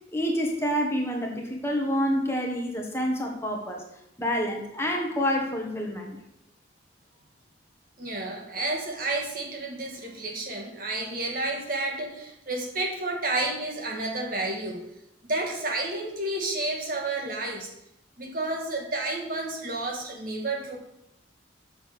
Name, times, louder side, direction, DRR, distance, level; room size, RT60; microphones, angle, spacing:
voice 1, 0.1-3.8 4.2-6.2, equal, 15° left, 1 dB, 1.2 m, -28 dB
voice 2, 8.0-14.8 15.3-17.7 18.2-20.8, right 2 dB, 50° right, 1 dB, 1.7 m, -31 dB
6.5 x 6.4 x 6.6 m, 0.80 s
head